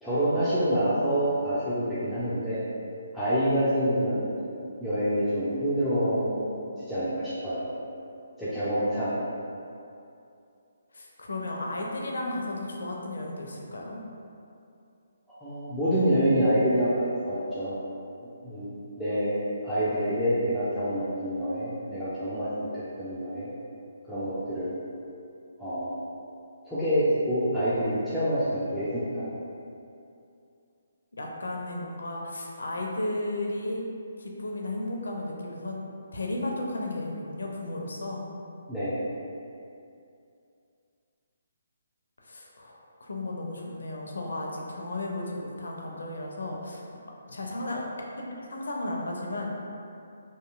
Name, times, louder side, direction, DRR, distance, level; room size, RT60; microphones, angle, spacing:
voice 1, 0.0-2.6 3.1-4.3 4.8-6.5 6.8-7.7 8.4-9.1 15.4-17.8 18.2-19.4 19.6-22.5 22.7-23.5 24.0-24.7 25.6-25.9 26.6-28.4 28.7-29.3 38.7-39.0, equal, ahead, -15 dB, 0.5 m, -27 dB
voice 2, 10.9-14.0 31.1-33.8 34.2-35.7 36.1-38.3 42.2-46.8 47.3-47.8 48.2-49.5, left 1 dB, 70° left, -1 dB, 0.4 m, -34 dB
2.8 x 2.6 x 2.3 m, 2.6 s
figure-of-eight pair, 140°, 0 cm